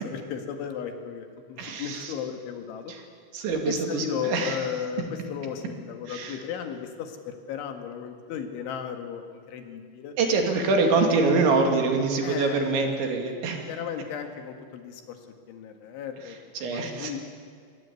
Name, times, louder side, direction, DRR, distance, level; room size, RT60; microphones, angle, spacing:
voice 1, 0.0-2.9 3.7-5.0 5.3-10.2 12.2-13.2 13.7-15.0 15.5-16.4 16.6-17.2, left 8 dB, 80° left, 5 dB, 4.2 m, -35 dB
voice 2, 1.6-2.1 2.9-3.0 3.3-4.6 6.1-6.4 10.2-13.6 16.3-17.1, right 3 dB, 70° right, 3 dB, 4.8 m, -25 dB
26.5 x 19.5 x 8.4 m, 2.1 s
omnidirectional pair, 5.5 m